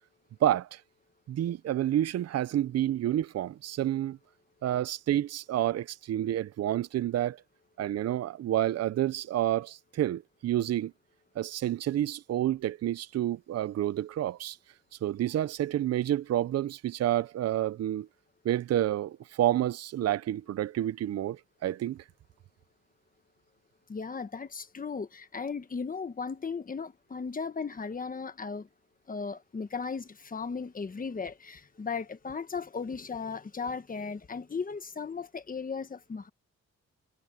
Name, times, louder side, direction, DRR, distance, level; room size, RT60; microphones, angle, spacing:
voice 1, 0.4-0.8 1.3-4.2 4.6-7.4 7.8-10.9 11.4-14.6 15.0-18.1 18.4-22.0, right 12 dB, 60° right, 0.5 m, -29 dB
voice 2, 23.9-28.7 29.1-36.3, left 5 dB, 30° left, 1.2 m, -36 dB
wide cardioid pair, 135°, 29 cm